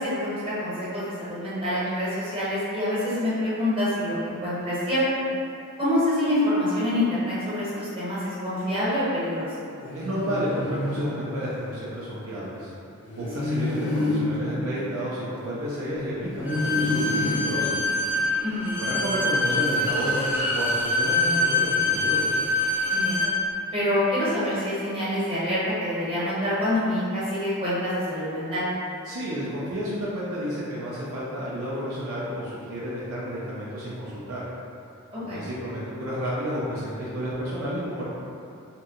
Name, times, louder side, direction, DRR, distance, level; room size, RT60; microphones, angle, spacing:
voice 1, 0.0-5.2 5.8-9.5 18.4-18.8 22.9-23.3 23.7-28.7 35.1-35.4, left 1 dB, 25° right, -11 dB, 1.0 m, -26 dB
sound 1, 9.8-11.9 13.1-15.8 16.3-18.5, left 1 dB, 75° left, 0.6 m, -29 dB
voice 2, 9.9-12.7 13.1-17.8 18.8-22.2 29.1-34.4 35.2-38.0, equal, 65° right, -7 dB, 0.5 m, -31 dB
Bowed string instrument, 16.5-23.3, left 2 dB, 10° right, 0.4 m, -25 dB
2.7 x 2.2 x 3.7 m, 2.5 s
head